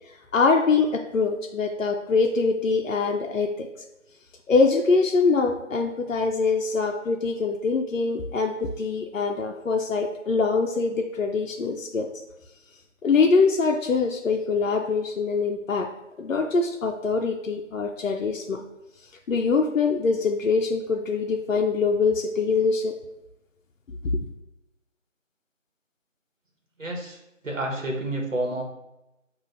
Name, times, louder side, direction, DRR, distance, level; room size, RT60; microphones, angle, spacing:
voice 1, 0.3-3.7 4.5-12.1 13.0-15.9 16.2-18.6 19.3-22.9 24.0-24.1, left 4 dB, 80° left, 3 dB, 0.5 m, -23 dB
voice 2, 26.8-27.2 27.4-28.6, right 1 dB, 80° right, 0 dB, 1.1 m, -29 dB
5.7 x 2.4 x 2.6 m, 0.91 s
figure-of-eight pair, 180°, 38 cm